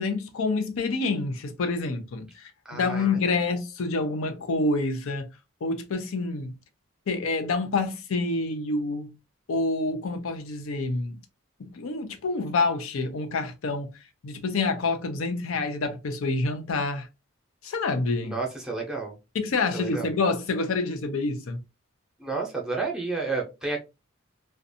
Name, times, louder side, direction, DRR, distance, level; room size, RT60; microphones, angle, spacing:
voice 1, 0.0-5.3 5.6-6.5 7.1-9.1 9.5-11.2 11.6-13.9 14.2-17.1 17.6-18.4 19.3-21.6, left 3 dB, 85° left, 0.5 m, -27 dB
voice 2, 2.6-3.1 18.2-19.2 19.7-20.1 22.2-23.8, right 3 dB, 5° right, 0.6 m, -31 dB
2.5 x 2.3 x 2.6 m
head